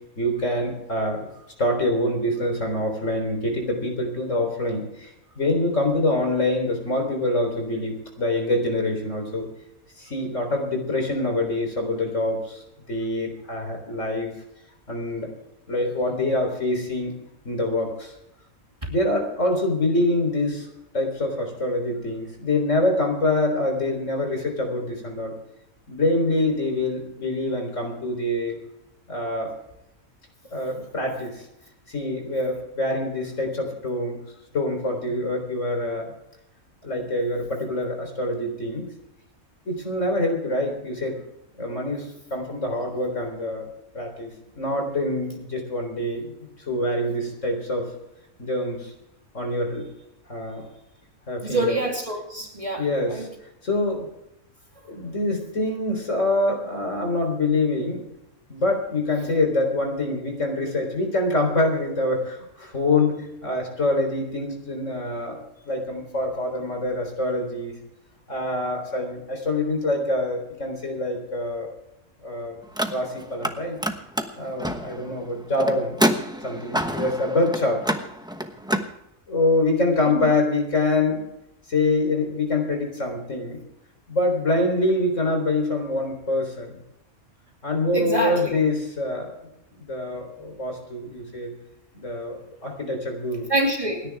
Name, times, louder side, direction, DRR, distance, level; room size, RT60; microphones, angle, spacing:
voice 1, 0.2-1.3 1.6-9.5 10.0-12.6 12.9-14.3 14.9-15.3 15.7-17.1 17.4-18.1 18.9-20.7 20.9-25.3 25.9-28.6 29.1-29.5 30.5-31.5 31.9-34.2 34.5-36.1 36.8-38.8 39.7-41.2 41.6-43.7 43.9-46.3 46.7-47.9 48.4-48.9 49.3-49.8 50.3-50.6 51.3-51.8 52.8-53.3 53.6-54.1 54.9-58.0 58.5-65.4 65.7-67.8 68.3-71.7 72.2-72.6 72.9-73.8 74.4-76.0 76.4-77.8 79.3-81.3 81.7-83.6 84.1-86.7 87.6-89.3 89.7-91.5 91.9-93.5, left 2 dB, 55° left, 3 dB, 4.1 m, -25 dB
voice 2, 51.4-53.2 87.9-88.6 93.5-94.0, right 1 dB, 25° right, 1 dB, 2.5 m, -26 dB
Car, 72.6-73.5 73.8-78.9, equal, 5° right, 0.9 m, -27 dB
28.5 x 10.5 x 3.5 m, 0.84 s
omnidirectional pair, 1.5 m